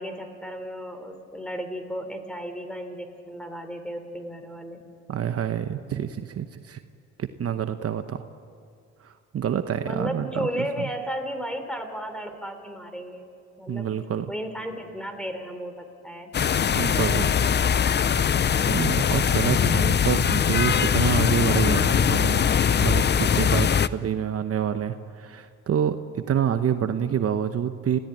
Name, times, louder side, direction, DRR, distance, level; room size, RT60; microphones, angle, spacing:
voice 1, 0.0-4.8 9.8-13.3 13.6-13.9 14.3-16.3, equal, 5° left, 7 dB, 3.3 m, -34 dB
voice 2, 5.1-6.8 7.2-8.2 9.0-10.5 10.8-10.9 13.7-14.3 16.7-17.4 18.7-22.5 22.8-28.0, right 9 dB, 50° right, 9 dB, 1.0 m, -27 dB
sound 1, 16.3-23.9, left 8 dB, 35° left, 0.6 m, -21 dB
27.5 x 16.5 x 9.0 m, 2.3 s
cardioid pair, 90°, 30 cm